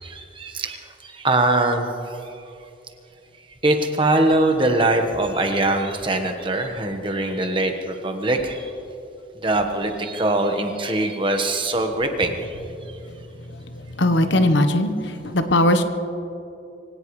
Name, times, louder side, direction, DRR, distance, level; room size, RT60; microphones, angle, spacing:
voice 1, 0.0-2.3 3.6-8.7 9.4-12.6, right 2 dB, 25° right, 4 dB, 1.3 m, -22 dB
voice 2, 14.0-15.8, left 1 dB, 65° left, 8 dB, 1.1 m, -19 dB
24.0 x 17.5 x 3.2 m, 2.7 s
head